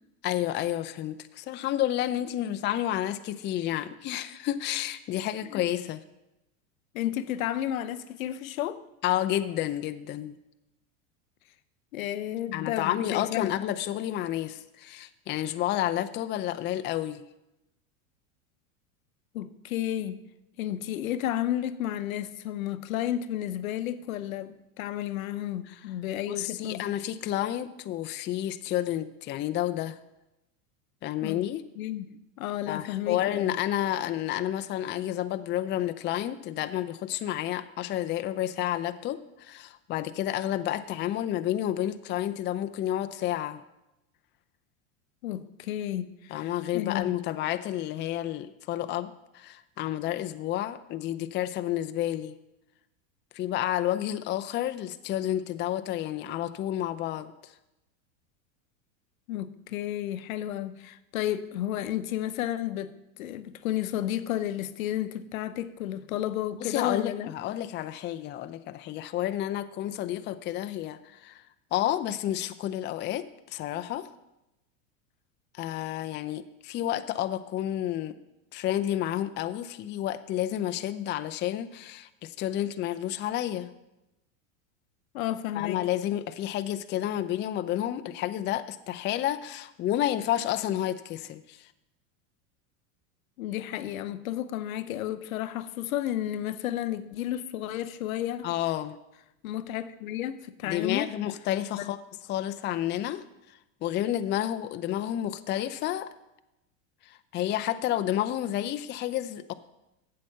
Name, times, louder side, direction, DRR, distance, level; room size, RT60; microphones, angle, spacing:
voice 1, 0.2-6.0 9.0-10.4 12.5-17.2 26.3-30.0 31.0-31.6 32.7-43.6 46.3-52.4 53.3-57.3 66.6-71.4 71.7-74.1 75.6-78.2 78.5-83.7 85.5-91.6 98.4-99.0 100.6-102.0 102.3-103.2 103.8-106.1 107.1-109.5, left 12 dB, 25° left, 0.5 m, -30 dB
voice 2, 6.9-8.8 11.9-13.5 19.3-20.2 20.6-26.9 31.2-31.4 31.8-33.6 45.2-47.2 59.3-62.9 63.2-67.3 85.1-85.8 93.4-98.5 99.4-101.1 101.8-101.9, left 12 dB, 80° left, 0.7 m, -32 dB
8.3 x 7.6 x 6.6 m
hypercardioid pair, 110°, 41 cm